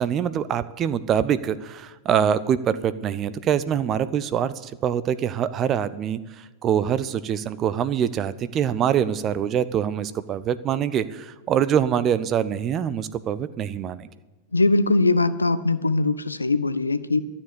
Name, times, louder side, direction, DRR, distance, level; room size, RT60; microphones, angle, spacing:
voice 1, 0.0-14.1, right 9 dB, 30° right, 14 dB, 0.5 m, -24 dB
voice 2, 14.5-17.2, left 2 dB, 80° left, 14 dB, 0.6 m, -21 dB
12.5 x 7.2 x 9.8 m, 1.1 s
figure-of-eight pair, 90°, 0 cm